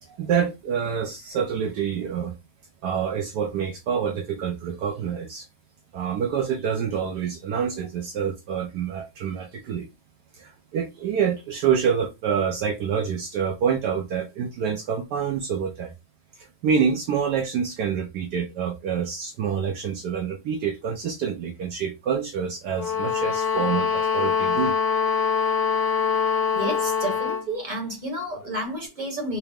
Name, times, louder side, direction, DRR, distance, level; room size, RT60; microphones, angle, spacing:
voice 1, 0.0-2.4 2.8-5.5 5.9-9.9 10.3-15.9 16.4-24.8, right 7 dB, 70° right, 1.1 m, -27 dB
sound 1, 22.7-27.5, left 6 dB, 60° left, 1.4 m, -24 dB
voice 2, 26.5-29.4, right 1 dB, 30° right, 1.0 m, -30 dB
4.7 x 2.0 x 3.5 m
omnidirectional pair, 1.9 m